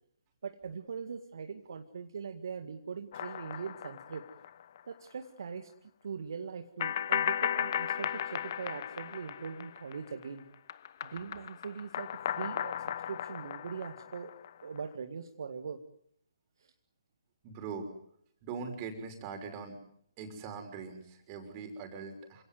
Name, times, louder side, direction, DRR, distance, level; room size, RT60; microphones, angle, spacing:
voice 1, 0.4-4.3 4.9-5.7 6.0-10.5 11.0-14.3 14.6-15.8 16.6-16.7, right 6 dB, 60° right, 6 dB, 2.0 m, -41 dB
sound 1, 3.1-4.8 5.1-5.2 6.8-10.3 10.5-14.8, left 9 dB, 45° left, 1.1 m, -36 dB
voice 2, 17.4-17.9 18.4-19.8 20.2-22.4, right 5 dB, 30° right, 5 dB, 6.1 m, -41 dB
28.5 x 17.5 x 9.6 m, 0.69 s
figure-of-eight pair, 135°, 3 cm